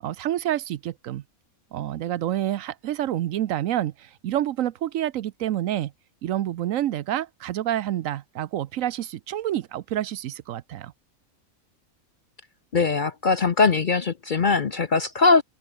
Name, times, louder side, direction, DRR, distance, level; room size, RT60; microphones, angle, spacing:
voice 1, 0.0-1.2 1.7-5.9 6.2-10.9, right 12 dB, 70° right, 1.0 m, -28 dB
voice 2, 12.7-15.4, left 4 dB, 45° left, 0.7 m, -21 dB
open air
omnidirectional pair, 1.5 m